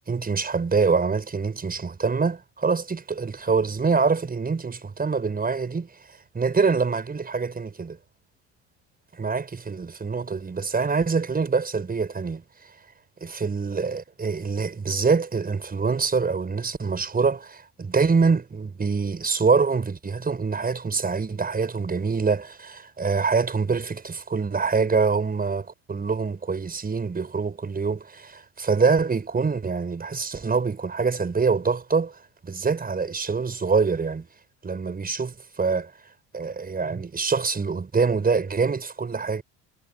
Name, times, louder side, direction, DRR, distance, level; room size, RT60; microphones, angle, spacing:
voice 1, 0.0-5.9 6.3-8.0 9.1-12.4 13.2-32.2 32.4-34.3 34.6-35.9 36.3-39.4, right 4 dB, 25° right, 6.1 m, -25 dB
hypercardioid pair, 75°, 35 cm